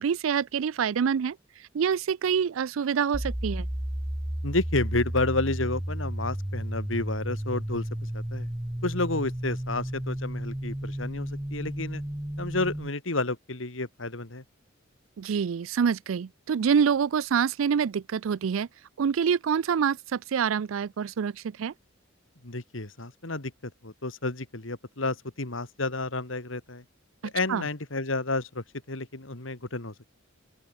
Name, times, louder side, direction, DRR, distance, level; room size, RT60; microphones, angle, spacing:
voice 1, 0.0-1.4 1.7-3.7 15.2-18.7 19.0-21.3 21.6-21.7 27.5-27.6, right 7 dB, 90° right, 0.4 m, -26 dB
sound 1, 3.1-12.9, equal, 10° right, 0.6 m, -33 dB
voice 2, 4.4-7.9 8.1-8.5 8.8-12.0 12.4-14.4 22.4-26.8 27.2-30.0, left 2 dB, 75° left, 2.7 m, -31 dB
open air
head